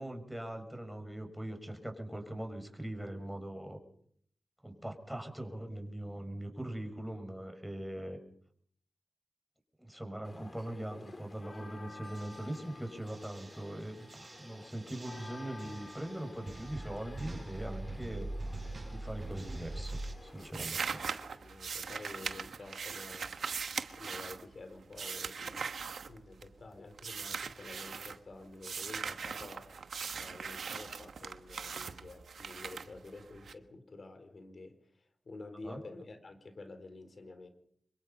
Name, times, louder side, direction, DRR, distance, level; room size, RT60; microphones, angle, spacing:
voice 1, 0.0-3.8 4.6-8.2 9.8-18.3 18.9-20.8 35.6-35.8, right 1 dB, 5° right, 5 dB, 6.4 m, -41 dB
sound 1, 10.2-20.5, left 3 dB, 50° left, 2.3 m, -52 dB
sound 2, 12.0-20.1, right 2 dB, 50° right, 7.9 m, -44 dB
sound 3, 19.2-19.6 19.9-26.6 27.0-28.2 28.6-33.5, right 5 dB, 90° right, 1.2 m, -40 dB
voice 2, 20.6-23.3 24.0-25.6 26.1-37.5, left 2 dB, 65° left, 8 dB, 4.2 m, -50 dB
26.0 x 22.0 x 5.6 m, 0.65 s
cardioid pair, 45°, 0 cm